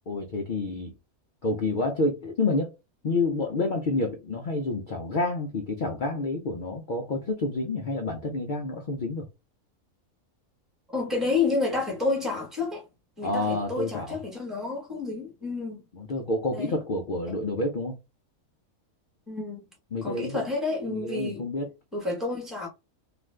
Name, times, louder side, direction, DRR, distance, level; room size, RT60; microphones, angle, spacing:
voice 1, 0.1-0.9 1.4-2.7 3.0-9.3 13.2-14.2 16.0-18.0 19.9-20.4 20.9-21.7, left 2 dB, 80° left, 0.4 m, -29 dB
voice 2, 10.9-12.9 13.2-15.8 16.5-16.8 19.3-19.6 20.0-21.5 21.9-22.7, left 3 dB, ahead, 1.0 m, -30 dB
2.5 x 2.4 x 3.2 m
omnidirectional pair, 1.5 m